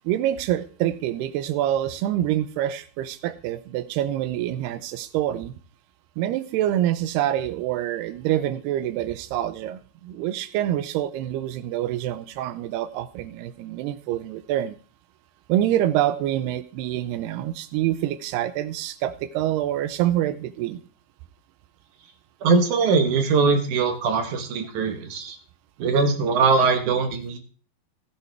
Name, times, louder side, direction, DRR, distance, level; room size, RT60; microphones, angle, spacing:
voice 1, 0.1-5.5 6.2-14.8 15.5-20.8, right 12 dB, 85° right, 14 dB, 2.8 m, -26 dB
voice 2, 22.4-25.4 25.8-27.4, right 4 dB, 60° right, 6 dB, 2.3 m, -21 dB
15.5 x 10.5 x 3.4 m, 0.38 s
omnidirectional pair, 4.6 m